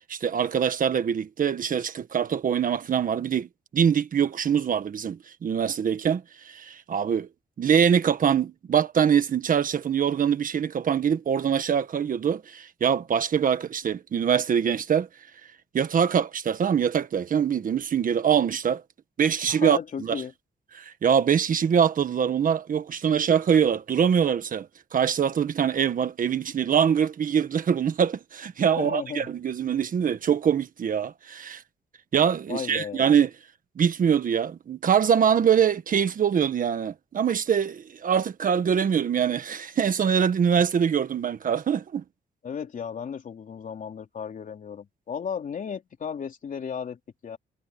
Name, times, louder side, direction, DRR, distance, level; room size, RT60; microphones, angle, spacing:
voice 1, 0.1-3.5 3.7-7.3 7.6-15.1 15.7-18.8 19.2-20.2 20.7-24.7 24.9-31.6 32.1-33.3 33.8-42.0, right 7 dB, 50° right, 1.4 m, -23 dB
voice 2, 19.5-20.3 28.8-29.3 32.5-33.0 42.4-47.4, left 7 dB, 50° left, 3.3 m, -34 dB
wide cardioid pair, 145°, 17 cm